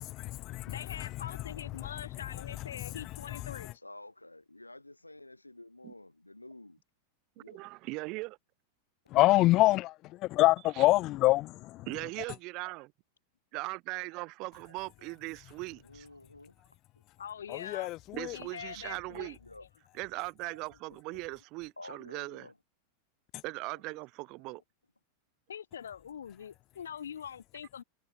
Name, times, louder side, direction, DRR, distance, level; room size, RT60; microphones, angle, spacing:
voice 1, 0.0-1.1 3.6-3.7 9.1-11.9 17.5-18.4, left 18 dB, 40° left, 0.4 m, -26 dB
voice 2, 0.6-3.8 15.0-15.1 17.2-17.9 18.3-19.4 22.1-22.4 25.5-27.8, left 8 dB, 65° left, 3.9 m, -44 dB
voice 3, 3.8-6.8 7.4-7.7 15.8-16.5 19.4-19.6 21.8-22.5, left 2 dB, 85° left, 3.1 m, -50 dB
voice 4, 7.4-8.4 10.8-10.9 11.9-12.9 13.5-16.1 18.1-19.4 19.9-22.5 23.4-24.6, right 24 dB, 40° right, 0.7 m, -39 dB
figure-of-eight pair, 90°, 0 cm